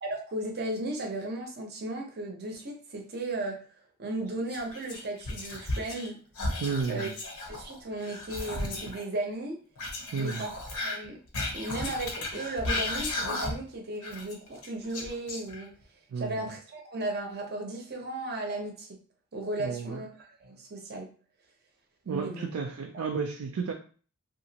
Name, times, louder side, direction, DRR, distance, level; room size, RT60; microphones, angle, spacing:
voice 1, 0.0-3.6 4.0-6.2 6.9-7.1 7.5-9.6 10.2-10.5 10.8-11.2 11.5-15.7 16.2-18.9 19.3-21.1 22.0-22.5, right 2 dB, 50° right, 1 dB, 0.7 m, -35 dB
Whispering, 4.5-6.1 6.3-9.0 9.8-13.7 14.0-15.8, left 2 dB, 80° left, 0.8 m, -34 dB
voice 2, 6.6-7.2 10.1-10.5 16.1-16.4 19.6-20.0 22.1-23.7, right 5 dB, 75° right, 3 dB, 0.3 m, -32 dB
2.8 x 2.4 x 2.8 m, 0.40 s
head